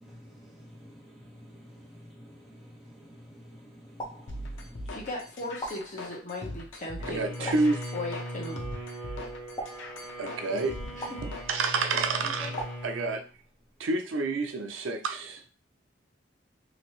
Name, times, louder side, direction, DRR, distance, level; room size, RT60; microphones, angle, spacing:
voice 1, 0.0-4.9 10.4-10.6 12.4-12.5, equal, ahead, 1.1 m, -49 dB
sound 1, 4.0-4.9 5.6-6.5 7.5-8.3 9.6-10.5 11.0-11.8 12.6-13.6, right 1 dB, 25° left, 0.6 m, -42 dB
sound 2, 4.3-12.8, left 1 dB, 75° left, 0.6 m, -41 dB
voice 2, 4.9-7.5 7.9-8.6 11.0-11.2, left 2 dB, 40° left, 0.9 m, -37 dB
Bowed string instrument, 7.0-13.3, equal, 30° right, 1.3 m, -40 dB
voice 3, 7.1-7.8 10.2-12.6 12.8-13.2 13.8-15.4, right 3 dB, 85° right, 0.5 m, -29 dB
3.0 x 2.6 x 3.0 m
head